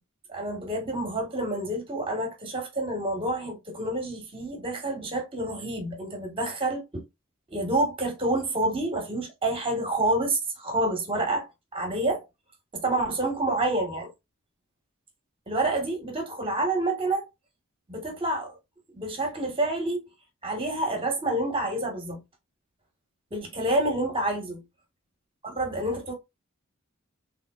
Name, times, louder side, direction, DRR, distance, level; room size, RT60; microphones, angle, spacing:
voice 1, 0.3-7.0 7.5-12.2 12.7-14.1 15.5-17.2 17.9-18.6 18.9-20.0 20.4-22.2 23.3-24.6 25.4-26.1, right 2 dB, 25° right, 1.5 m, -28 dB
3.6 x 3.2 x 2.4 m
head